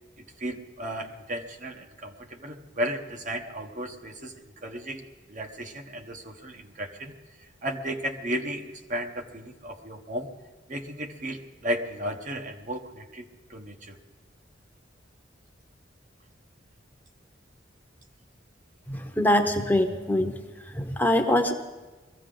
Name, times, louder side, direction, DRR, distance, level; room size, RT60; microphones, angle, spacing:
voice 1, 0.4-4.3 4.6-5.0 5.3-7.1 7.6-10.3 10.7-14.0, equal, 45° right, 5 dB, 1.2 m, -34 dB
voice 2, 18.9-20.3 20.7-21.5, left 1 dB, 10° left, 5 dB, 0.8 m, -23 dB
22.5 x 15.0 x 3.9 m, 1.2 s
head